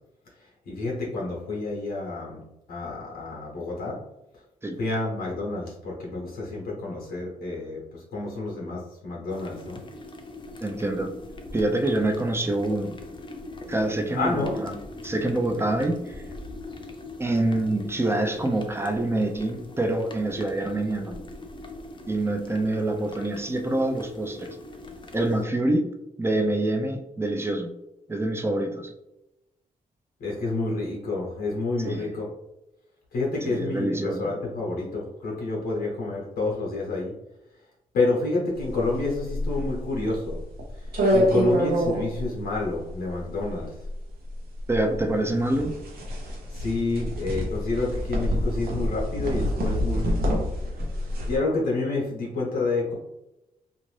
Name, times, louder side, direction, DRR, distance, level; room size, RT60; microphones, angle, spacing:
voice 1, 0.4-2.4 2.7-4.0 4.8-9.8 14.2-14.6 30.2-32.3 33.1-37.1 37.9-40.4 40.7-43.8 46.5-50.4 51.3-52.9, left 3 dB, 90° left, -3 dB, 0.9 m, -29 dB
sound 1, 9.3-25.4, left 2 dB, 30° left, 0.5 m, -41 dB
voice 2, 10.6-11.1 11.5-13.0 13.7-14.7 15.0-16.2 17.2-21.2 22.1-24.6 25.1-25.9 26.2-27.7 28.1-28.9 31.8-32.2 33.4-34.3 44.7-45.7, right 1 dB, 15° right, 5 dB, 0.5 m, -26 dB
sound 2, 38.6-51.4, equal, 80° right, 0.7 m, -27 dB
2.5 x 2.5 x 3.2 m, 0.90 s
cardioid pair, 70°, 16 cm